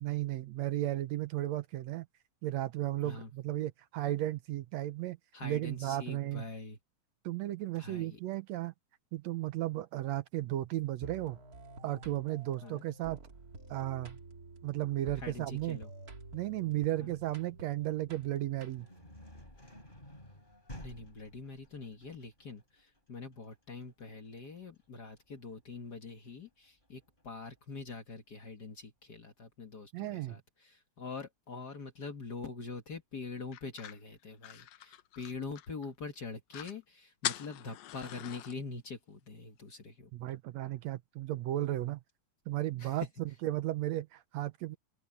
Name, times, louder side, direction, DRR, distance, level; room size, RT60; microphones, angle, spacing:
voice 1, 0.0-2.1 2.4-6.4 7.2-8.7 9.1-11.4 11.8-13.2 13.7-14.2 14.6-15.8 16.3-18.9 29.9-30.4 40.1-42.0 42.5-43.1 43.4-44.8, right 14 dB, 75° right, 1.9 m, -34 dB
voice 2, 5.3-6.8 7.8-8.2 12.6-12.8 15.2-15.9 17.0-17.2 20.8-40.3 42.8-42.9, left 4 dB, 40° left, 1.8 m, -44 dB
sound 1, 11.0-19.1, right 2 dB, 30° right, 2.4 m, -50 dB
sound 2, 17.8-27.6, left 1 dB, 15° left, 7.3 m, -54 dB
sound 3, 33.5-35.9 36.2-36.3 36.5-36.8 37.2-38.6, left 13 dB, 70° left, 1.9 m, -41 dB
open air
omnidirectional pair, 3.4 m